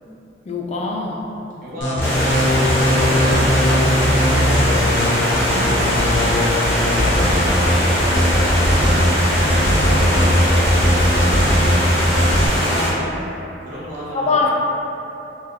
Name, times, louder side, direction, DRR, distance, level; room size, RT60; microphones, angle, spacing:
voice 1, 0.5-1.3 5.5-5.9 12.6-13.3 14.1-14.5, left 3 dB, 35° left, 0 dB, 0.3 m, -24 dB
voice 2, 1.6-2.7 3.0-3.8 4.1-5.0 6.9-11.4 13.6-14.5, equal, 50° right, -9 dB, 0.9 m, -33 dB
sound 1, 1.8-12.5, left 1 dB, 90° left, 0.6 m, -18 dB
Stream, 2.0-12.9, equal, 15° left, 0.9 m, -21 dB
2.7 x 2.3 x 3.7 m, 3.0 s
head